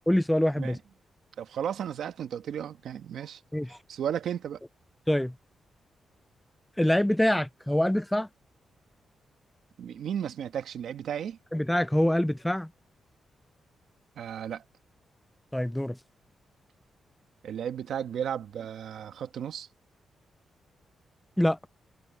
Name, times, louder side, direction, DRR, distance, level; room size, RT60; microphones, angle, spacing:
voice 1, 0.1-0.8 3.5-3.8 5.1-5.3 6.8-8.3 11.5-12.7 15.5-16.0 21.4-21.6, left 1 dB, 5° left, 0.3 m, -25 dB
voice 2, 1.4-3.4 3.9-4.6 9.8-11.4 14.2-14.6 17.4-19.7, right 9 dB, 75° right, 1.2 m, -34 dB
cardioid pair, 120°, 0 cm